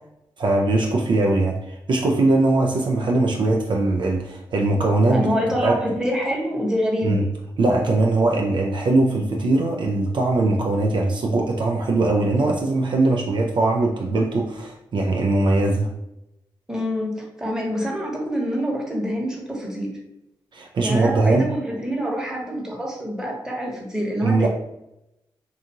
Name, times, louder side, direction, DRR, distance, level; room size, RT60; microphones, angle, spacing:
voice 1, 0.4-5.3 5.6-5.8 7.0-7.3 7.6-15.9 20.5-21.5 24.2-24.5, right 2 dB, 55° right, 0 dB, 0.4 m, -21 dB
voice 2, 5.1-7.2 16.7-19.9 20.8-24.5, equal, 5° right, -2 dB, 1.0 m, -26 dB
2.6 x 2.3 x 2.9 m, 0.87 s
supercardioid pair, 45°, 10 cm